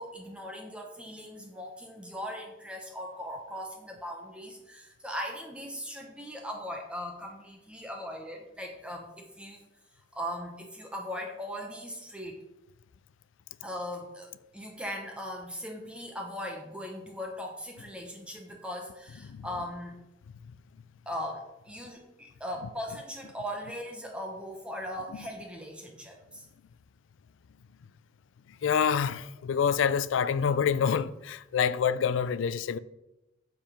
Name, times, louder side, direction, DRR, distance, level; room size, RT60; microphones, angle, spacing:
voice 1, 0.0-9.6 10.1-12.4 13.6-20.0 21.1-26.5, equal, 5° right, 0.7 m, -39 dB
voice 2, 28.6-32.8, left 7 dB, 85° left, 0.4 m, -27 dB
7.3 x 4.7 x 5.1 m
head